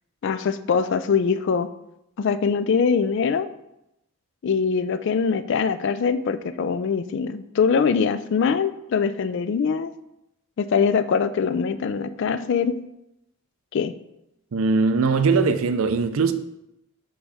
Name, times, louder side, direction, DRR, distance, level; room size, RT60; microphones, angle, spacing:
voice 1, 0.2-1.7 2.2-3.5 4.4-9.9 10.6-12.8 13.7-13.9, left 6 dB, 55° left, 0.3 m, -23 dB
voice 2, 14.5-16.3, right 4 dB, 70° right, 0.5 m, -20 dB
6.2 x 3.2 x 4.8 m
head